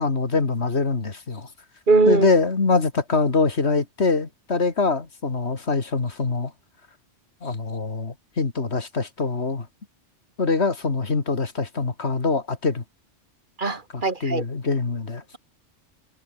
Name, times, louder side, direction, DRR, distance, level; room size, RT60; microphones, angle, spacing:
voice 1, 0.0-1.5 2.1-6.5 7.4-9.7 10.4-12.8 13.9-15.2, left 4 dB, 65° left, 2.6 m, -24 dB
voice 2, 1.9-2.3 13.6-14.4, right 3 dB, 45° right, 2.5 m, -20 dB
omnidirectional pair, 1.2 m